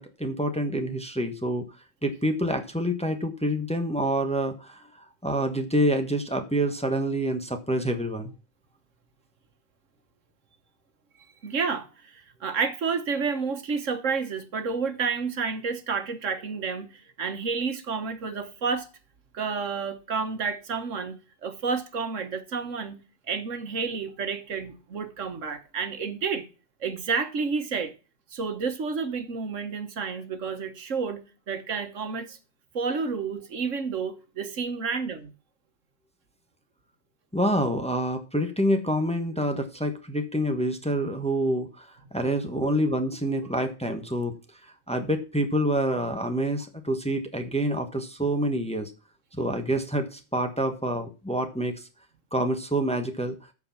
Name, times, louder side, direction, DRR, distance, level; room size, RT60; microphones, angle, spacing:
voice 1, 0.0-1.6 2.0-8.3 37.3-44.3 44.6-48.9 49.4-51.9 52.3-53.3, right 1 dB, 5° left, 1.2 m, -27 dB
voice 2, 11.4-18.9 19.3-26.5 26.8-27.9 28.3-32.4 32.7-35.3 42.6-42.8 43.4-43.5, right 5 dB, 75° right, 1.6 m, -30 dB
14.0 x 4.8 x 5.8 m
omnidirectional pair, 1.3 m